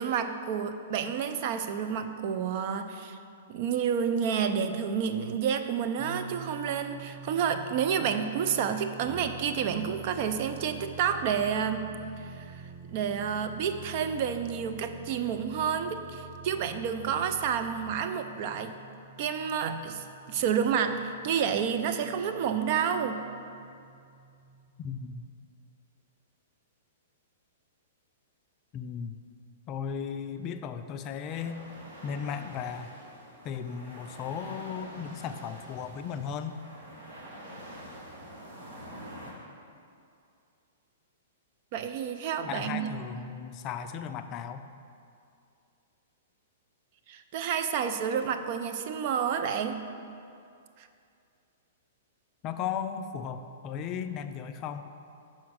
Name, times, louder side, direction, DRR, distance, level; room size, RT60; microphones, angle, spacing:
voice 1, 0.0-3.2 3.5-11.8 12.2-12.6 12.9-18.7 19.2-23.2 41.7-43.1 47.1-49.8 50.8-50.9, right 7 dB, 50° right, 8 dB, 0.5 m, -30 dB
sound 1, 6.0-24.7, right 5 dB, 20° right, 1.6 m, -50 dB
Brass instrument, 9.0-18.5, right 5 dB, 5° left, 0.9 m, -47 dB
voice 2, 24.8-25.3 28.7-29.2 29.7-31.6 32.0-32.9 33.4-36.6 42.4-44.7 52.4-54.9, left 7 dB, 35° left, 9 dB, 0.3 m, -36 dB
sound 2, 31.2-39.3, right 1 dB, 70° right, 1.5 m, -46 dB
5.7 x 4.3 x 6.2 m, 2.4 s
hypercardioid pair, 120°, 0 cm